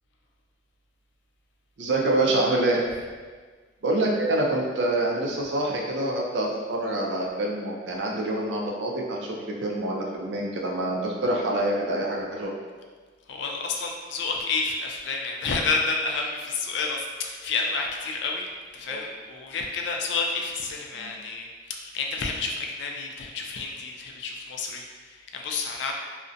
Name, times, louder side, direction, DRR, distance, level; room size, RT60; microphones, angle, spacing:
voice 1, 1.8-2.8 3.8-9.2 9.5-12.5 18.9-19.0 20.9-21.1, right 1 dB, 75° right, -1 dB, 0.4 m, -26 dB
voice 2, 13.3-18.5 18.7-25.9, left 4 dB, 75° left, 1 dB, 0.3 m, -30 dB
2.5 x 2.1 x 2.4 m, 1.5 s
head